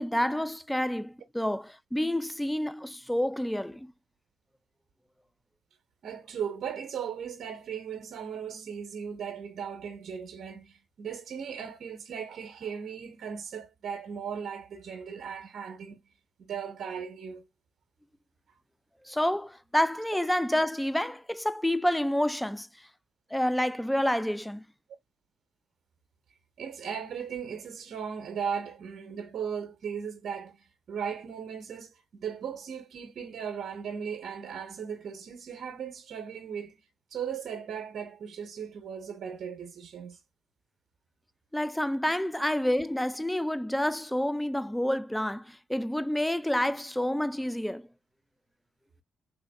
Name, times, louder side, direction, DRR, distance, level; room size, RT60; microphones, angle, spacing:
voice 1, 0.0-3.9 19.1-22.7 23.3-24.6 41.5-47.9, left 1 dB, 5° left, 0.4 m, -28 dB
voice 2, 6.0-16.0 16.4-17.5 26.6-36.8 37.1-40.2, right 7 dB, 70° right, 0.9 m, -37 dB
3.5 x 3.4 x 2.2 m
supercardioid pair, 55°, 0 cm